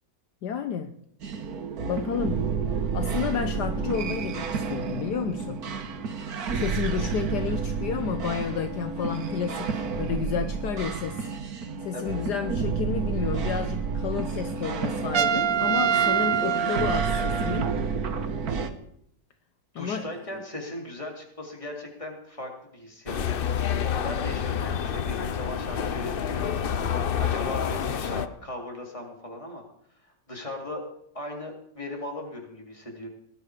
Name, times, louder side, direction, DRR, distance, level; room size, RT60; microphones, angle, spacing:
voice 1, 0.4-0.9 1.9-2.5 2.9-5.6 6.5-11.3 11.8-17.7 19.7-20.0, left 7 dB, 70° left, 9 dB, 1.4 m, -31 dB
sound 1, 1.2-18.7, right 5 dB, 60° right, 1.7 m, -30 dB
Trumpet, 15.1-17.8, right 8 dB, 90° right, 1.6 m, -25 dB
voice 2, 19.7-23.2 23.5-26.4 27.1-29.6 30.0-30.8 31.1-33.1, left 1 dB, 15° left, 1 dB, 3.5 m, -38 dB
sound 2, 23.1-28.3, left 8 dB, 85° left, 0.5 m, -28 dB
19.5 x 11.5 x 5.1 m, 0.72 s
omnidirectional pair, 1.9 m